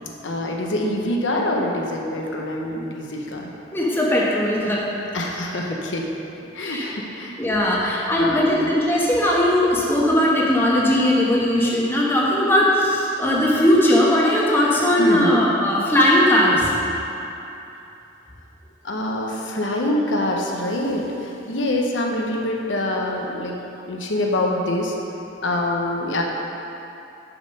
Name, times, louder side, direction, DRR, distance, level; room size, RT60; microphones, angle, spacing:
voice 1, 0.2-3.5 5.1-6.1 6.5-7.4 8.2-8.7 15.0-15.4 18.8-23.6 23.9-25.0 25.4-26.2, left 1 dB, 80° left, 0 dB, 0.9 m, -25 dB
voice 2, 3.7-4.8 6.6-6.8 7.4-16.7, left 1 dB, 10° left, -5 dB, 1.1 m, -19 dB
6.9 x 6.4 x 5.3 m, 2.8 s
head